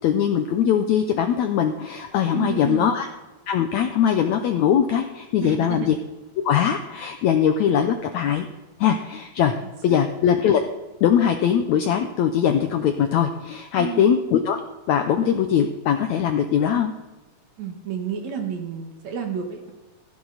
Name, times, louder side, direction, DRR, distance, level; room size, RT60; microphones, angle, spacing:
voice 1, 0.0-3.1 3.5-6.0 6.4-8.5 8.8-9.5 9.8-10.6 11.0-14.6 14.9-16.9, left 8 dB, 80° left, 6 dB, 1.7 m, -21 dB
voice 2, 2.3-2.9 5.4-5.9 9.9-10.0 13.8-14.1 17.6-19.7, right 7 dB, 60° right, 4 dB, 2.4 m, -30 dB
16.0 x 15.5 x 4.0 m, 1.1 s
omnidirectional pair, 4.2 m